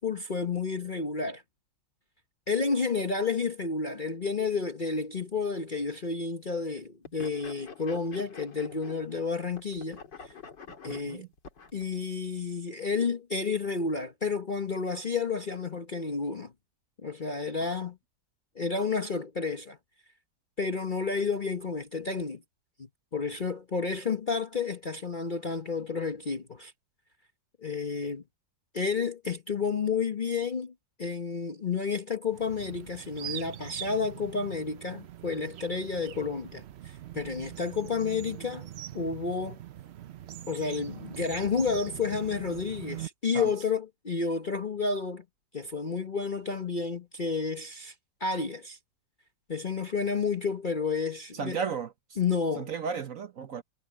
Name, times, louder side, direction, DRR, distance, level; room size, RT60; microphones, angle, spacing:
voice 1, 0.0-1.4 2.5-10.3 10.8-11.2 11.7-16.5 17.0-18.0 18.5-19.8 20.6-22.4 23.1-26.7 27.6-28.2 28.7-30.7 31.0-38.7 38.9-39.6 40.5-45.2 45.5-47.9 48.2-48.8 49.5-51.6 52.2-52.7, left 5 dB, 35° left, 0.9 m, -31 dB
sound 1, 7.0-9.3 9.5-11.8, left 6 dB, 70° left, 3.8 m, -46 dB
voice 2, 10.8-11.3 43.3-43.5 51.3-51.9 52.6-53.6, right 6 dB, 55° right, 1.2 m, -34 dB
sound 2, 32.3-43.1, right 11 dB, 85° right, 0.5 m, -43 dB
omnidirectional pair, 2.0 m